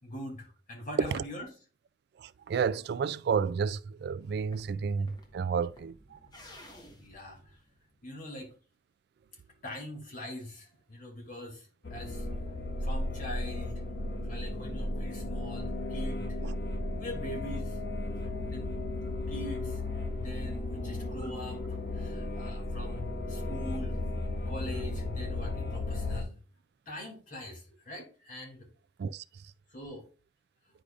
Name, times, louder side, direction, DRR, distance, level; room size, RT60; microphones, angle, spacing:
voice 1, 0.0-1.5 7.0-7.4 8.0-8.5 9.6-12.3 12.8-13.8 14.3-16.4 17.0-17.8 18.2-18.7 19.3-19.8 20.2-21.6 22.0-24.0 24.5-26.4 26.9-28.7 29.7-30.0, left 1 dB, 50° left, 2.6 m, -42 dB
voice 2, 2.2-5.9 16.4-16.5 29.0-29.2, right 6 dB, 65° right, 0.3 m, -31 dB
sound 1, 4.2-8.4, left 1 dB, 25° left, 1.1 m, -55 dB
sound 2, 11.8-26.2, left 2 dB, 75° left, 1.4 m, -35 dB
10.0 x 4.9 x 2.5 m
head